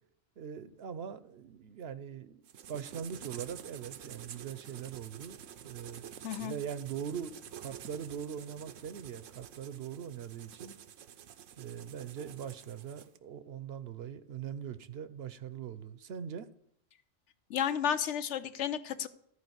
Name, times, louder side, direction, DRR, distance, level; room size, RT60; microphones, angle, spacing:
voice 1, 0.4-2.4 2.7-5.4 5.6-6.0 6.4-10.7 11.6-16.5, right 8 dB, 60° right, 0.8 m, -41 dB
sound 1, 2.5-13.2, right 9 dB, 85° right, 1.1 m, -49 dB
voice 2, 17.5-19.1, left 9 dB, 70° left, 0.9 m, -32 dB
13.5 x 4.8 x 7.9 m
omnidirectional pair, 1.3 m